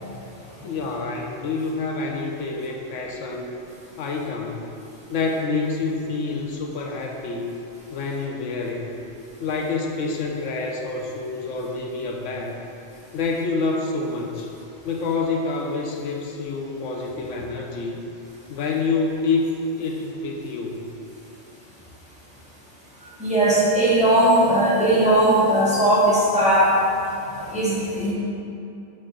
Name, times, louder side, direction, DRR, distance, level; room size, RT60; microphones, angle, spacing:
voice 1, 0.6-3.5 4.0-4.7 5.1-7.5 7.9-8.9 9.4-12.6 13.1-14.5 14.8-18.0 18.5-19.5 19.8-20.8, left 4 dB, 80° left, 1 dB, 1.0 m, -27 dB
voice 2, 23.2-26.7 27.3-28.1, right 1 dB, 5° right, -9 dB, 1.4 m, -18 dB
6.6 x 3.6 x 5.1 m, 2.7 s
omnidirectional pair, 1.3 m